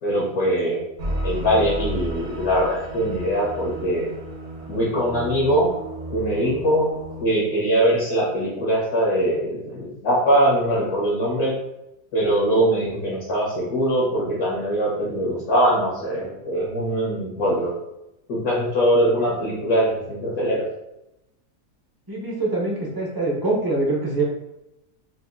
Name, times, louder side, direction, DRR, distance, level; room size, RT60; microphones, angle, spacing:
voice 1, 0.0-0.8 1.1-4.1 4.7-5.7 6.1-6.9 7.2-11.5 12.1-17.7 18.3-20.6, equal, 70° left, -6 dB, 1.6 m, -22 dB
sound 1, 1.0-7.3, right 1 dB, 55° right, 0.9 m, -33 dB
voice 2, 22.1-24.2, right 2 dB, 25° right, -4 dB, 0.5 m, -24 dB
5.0 x 2.5 x 2.5 m, 0.89 s
omnidirectional pair, 1.6 m